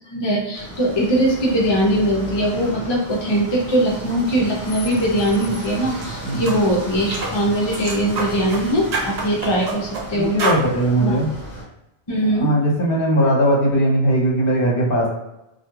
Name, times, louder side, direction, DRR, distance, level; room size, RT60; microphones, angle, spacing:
voice 1, 0.1-10.4 11.0-11.2 12.1-12.5, right 1 dB, 35° left, -3 dB, 0.4 m, -21 dB
sound 1, 0.5-11.6, right 1 dB, 15° left, 0.8 m, -34 dB
sound 2, 5.9-6.1 6.5-6.6 7.1-7.3 7.7-8.6 8.9-10.1 10.4-10.6, right 3 dB, 50° right, 0.5 m, -26 dB
voice 2, 10.1-11.3 12.3-15.1, right 1 dB, 55° left, -3 dB, 0.9 m, -19 dB
2.3 x 2.2 x 3.0 m, 0.92 s
omnidirectional pair, 1.2 m